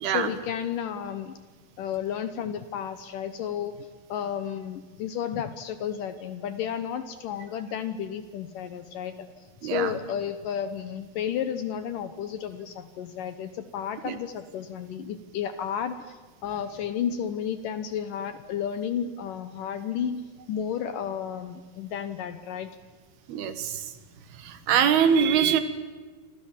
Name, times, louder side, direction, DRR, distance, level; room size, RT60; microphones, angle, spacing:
voice 1, 0.0-1.3 1.8-9.3 9.6-22.7, left 8 dB, 70° left, 11 dB, 2.3 m, -32 dB
voice 2, 9.6-9.9 14.1-14.2 23.3-23.8 24.4-25.6, right 8 dB, 75° right, 11 dB, 3.4 m, -23 dB
27.5 x 25.5 x 7.5 m, 1.3 s
omnidirectional pair, 4.7 m